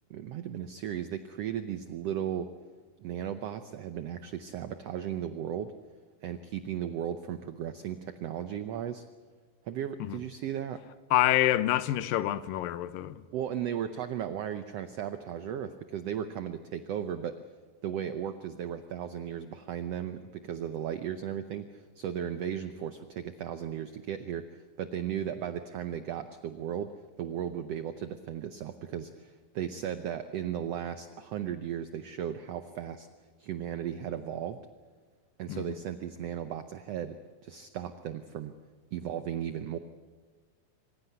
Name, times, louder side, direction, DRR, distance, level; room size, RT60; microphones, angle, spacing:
voice 1, 0.1-2.5 3.0-5.7 6.2-9.0 9.6-10.8 13.3-17.4 17.8-33.1 33.4-34.6 35.4-37.1 37.4-38.5 38.9-39.8, right 9 dB, 80° right, 1.4 m, -36 dB
voice 2, 11.1-13.2 35.5-35.8, left 14 dB, 85° left, 2.6 m, -27 dB
25.5 x 15.5 x 9.3 m
omnidirectional pair, 3.9 m